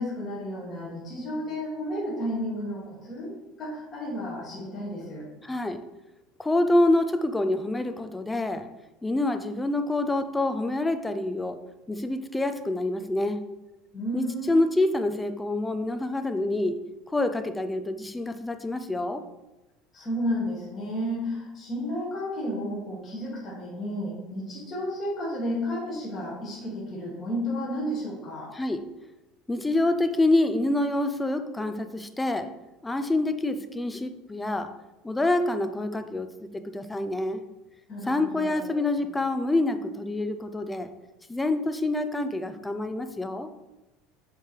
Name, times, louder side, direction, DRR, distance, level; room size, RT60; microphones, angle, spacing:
voice 1, 0.0-3.3 3.6-5.3 13.9-14.6 19.9-28.5 37.9-38.9, equal, 25° left, -6 dB, 2.0 m, -32 dB
voice 2, 5.4-5.8 6.4-8.7 9.0-11.6 11.9-13.4 14.1-16.8 17.1-19.2 28.5-28.8 29.5-32.5 32.8-34.7 35.0-37.4 38.1-40.9 41.3-43.5, left 2 dB, 10° left, 9 dB, 0.4 m, -26 dB
6.8 x 3.3 x 4.5 m, 1.0 s
cardioid pair, 155°, 0 cm